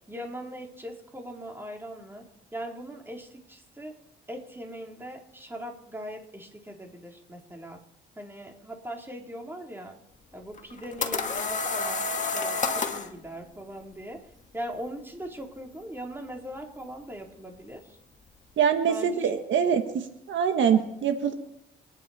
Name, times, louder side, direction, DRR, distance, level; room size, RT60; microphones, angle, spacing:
voice 1, 0.1-2.2 2.5-3.9 4.3-7.8 8.1-9.9 10.3-14.2 14.5-17.8 18.9-19.3 19.6-19.7, equal, 10° right, 1 dB, 3.6 m, -40 dB
sound 1, 10.6-13.1, left 4 dB, 40° left, 1.9 m, -29 dB
voice 2, 18.6-20.0 20.3-21.3, right 7 dB, 70° right, 6 dB, 1.6 m, -24 dB
28.5 x 10.0 x 4.3 m, 0.81 s
cardioid pair, 90°, 20 cm